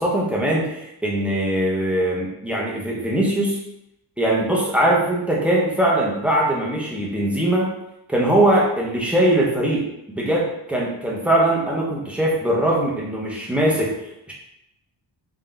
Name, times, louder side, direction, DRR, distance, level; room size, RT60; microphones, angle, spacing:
voice 1, 0.0-3.6 4.2-7.7 8.1-14.0 14.3-14.4, right 1 dB, 5° right, -4 dB, 0.7 m, -21 dB
3.7 x 2.7 x 3.4 m, 0.84 s
wide cardioid pair, 150°, 43 cm